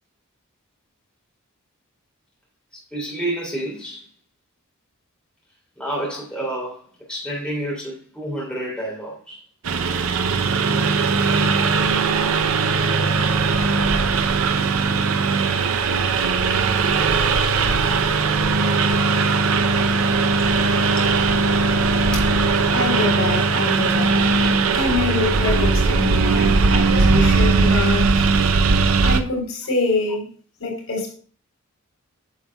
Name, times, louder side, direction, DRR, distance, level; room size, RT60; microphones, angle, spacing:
voice 1, 2.9-4.0 5.8-9.4, right 1 dB, 5° left, 2.8 m, -29 dB
Engine, 9.6-29.2, right 4 dB, 80° right, 0.6 m, -19 dB
voice 2, 22.7-28.3 29.0-30.3 30.6-31.1, left 3 dB, 80° left, 3.9 m, -25 dB
9.3 x 7.2 x 2.3 m
head